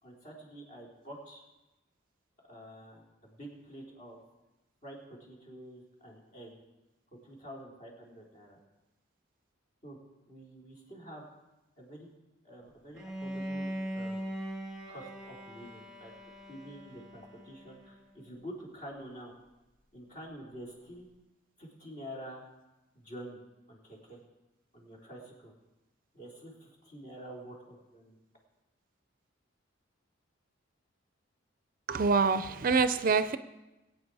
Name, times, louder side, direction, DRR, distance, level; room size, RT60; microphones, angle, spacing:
voice 1, 0.0-1.4 2.5-4.2 4.8-6.6 7.2-8.6 9.8-10.0 10.3-11.2 11.8-12.1 12.4-14.4 14.9-16.1 16.5-19.3 19.9-21.1 21.6-22.4 22.9-23.4 23.7-24.2 24.7-25.5 26.1-28.2, equal, 40° left, 3.8 m, -48 dB
Bowed string instrument, 12.9-17.9, right 1 dB, ahead, 2.2 m, -40 dB
voice 2, 31.9-33.4, right 4 dB, 45° right, 0.5 m, -26 dB
22.0 x 8.9 x 4.8 m
head